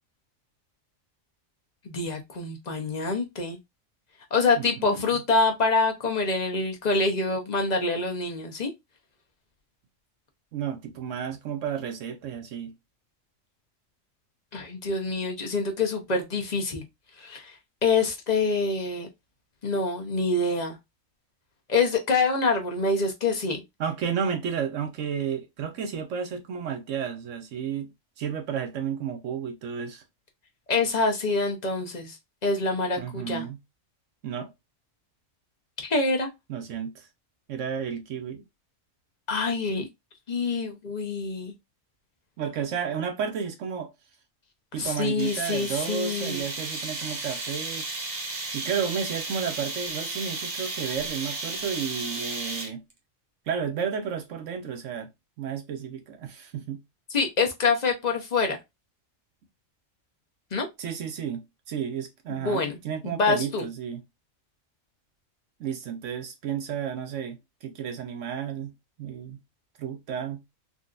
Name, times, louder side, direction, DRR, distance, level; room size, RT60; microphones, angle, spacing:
voice 1, 1.8-3.6 4.3-8.7 14.5-16.8 17.2-17.6 17.8-19.1 19.6-20.8 21.7-23.6 30.7-32.2 32.4-33.4 35.8-36.3 39.3-39.8 40.3-41.5 44.8-46.4 57.1-58.6 60.5-60.7 62.3-62.8 63.0-63.6, left 3 dB, 40° left, 0.7 m, -26 dB
voice 2, 4.6-5.2 10.5-12.7 23.8-27.9 28.2-30.0 33.0-33.6 34.2-34.5 36.5-37.1 37.5-38.4 42.4-43.9 44.7-47.9 48.5-52.8 53.5-55.1 55.4-56.8 60.8-64.0 65.6-68.7 69.0-69.4 69.8-70.4, right 7 dB, 75° right, 1.0 m, -32 dB
sound 1, 45.2-52.9, right 3 dB, 50° right, 1.0 m, -34 dB
3.7 x 2.3 x 2.4 m
omnidirectional pair, 1.3 m